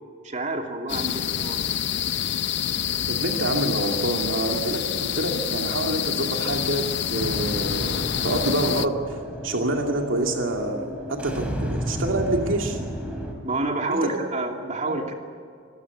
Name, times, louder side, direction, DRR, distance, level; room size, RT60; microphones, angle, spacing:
voice 1, 0.2-1.7 13.4-15.1, right 2 dB, 40° right, 3 dB, 2.8 m, -28 dB
sound 1, 0.9-8.9, left 9 dB, 60° left, 0.6 m, -27 dB
voice 2, 3.1-9.2 9.4-12.8 13.9-14.1 14.9-15.0, right 2 dB, 90° right, 2 dB, 2.5 m, -27 dB
sound 2, 7.2-13.3, equal, 5° right, 3.8 m, -32 dB
25.5 x 15.5 x 9.5 m, 2.2 s
head